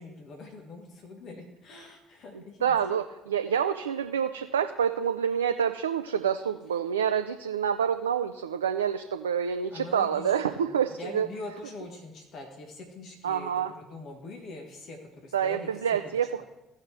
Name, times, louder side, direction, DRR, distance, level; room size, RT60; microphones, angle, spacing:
voice 1, 0.0-2.9 9.7-15.7, left 3 dB, 55° left, 2 dB, 1.6 m, -44 dB
voice 2, 2.6-11.3 13.2-13.7 15.3-16.4, right 8 dB, 85° right, 7 dB, 0.3 m, -27 dB
16.0 x 5.5 x 3.4 m, 1.0 s
hypercardioid pair, 50°, 0 cm